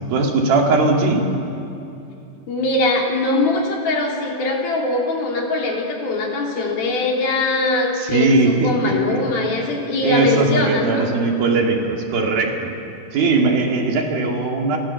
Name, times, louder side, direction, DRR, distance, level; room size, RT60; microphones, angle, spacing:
voice 1, 0.1-1.3 8.0-9.2 10.0-12.7 13.1-14.8, right 3 dB, 70° right, 1 dB, 4.3 m, -19 dB
voice 2, 2.5-11.1, left 2 dB, 70° left, -1 dB, 5.2 m, -21 dB
29.0 x 27.0 x 7.1 m, 2.6 s
omnidirectional pair, 4.5 m